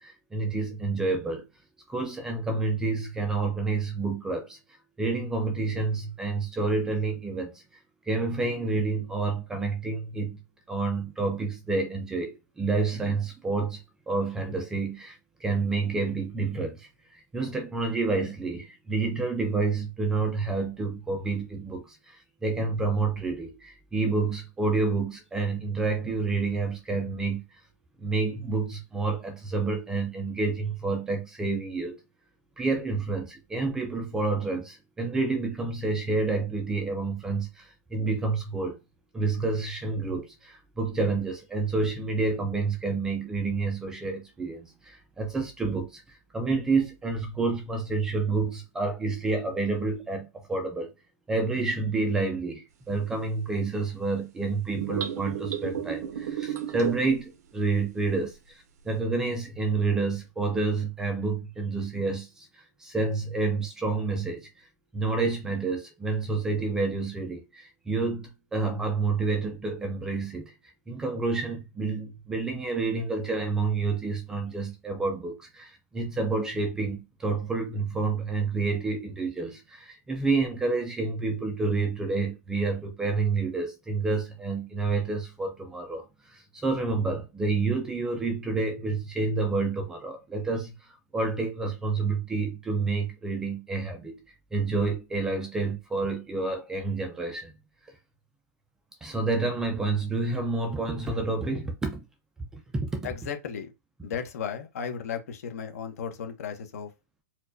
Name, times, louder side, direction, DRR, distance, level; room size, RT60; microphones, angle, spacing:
voice 1, 0.0-1.4 1.9-4.6 5.0-7.6 8.0-10.4 10.7-13.8 14.1-27.5 28.0-32.0 32.6-38.8 39.1-50.9 51.3-64.7 64.9-70.5 70.9-94.2 94.5-97.5 99.0-102.0 102.7-103.1, right 3 dB, 5° right, 0.3 m, -29 dB
sound 1, 54.7-57.2, right 9 dB, 65° right, 0.6 m, -32 dB
voice 2, 103.0-103.7 104.0-106.9, left 7 dB, 60° left, 0.9 m, -35 dB
4.3 x 2.2 x 2.6 m
supercardioid pair, 170°, 9 cm